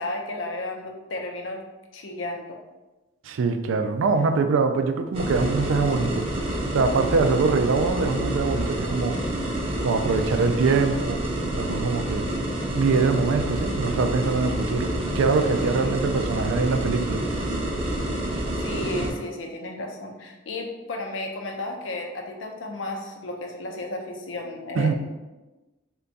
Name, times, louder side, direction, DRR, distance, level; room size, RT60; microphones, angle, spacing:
voice 1, 0.0-1.6 1.9-2.6 15.6-16.0 18.6-24.9, left 2 dB, 80° left, 2 dB, 0.6 m, -33 dB
voice 2, 3.2-6.3 6.7-9.2 9.8-12.3 12.8-17.2 24.8-24.9, right 4 dB, 85° right, 7 dB, 0.3 m, -23 dB
sound 1, 5.1-19.1, right 1 dB, 30° right, 0.6 m, -28 dB
3.4 x 2.2 x 3.9 m, 1.1 s
head